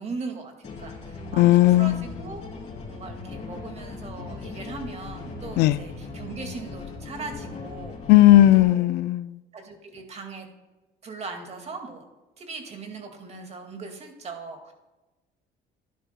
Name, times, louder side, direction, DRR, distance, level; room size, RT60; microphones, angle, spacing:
voice 1, 0.0-2.4 2.8-8.0 8.5-8.9 9.5-10.5 11.0-12.0 12.4-14.7, right 4 dB, 40° right, 2.0 m, -39 dB
sound 1, 0.6-8.6, left 4 dB, 40° left, 3.3 m, -38 dB
voice 2, 1.4-2.0 5.6-5.8 8.1-9.4, left 14 dB, 80° left, 0.4 m, -16 dB
12.0 x 11.0 x 2.2 m
cardioid pair, 110°, 17 cm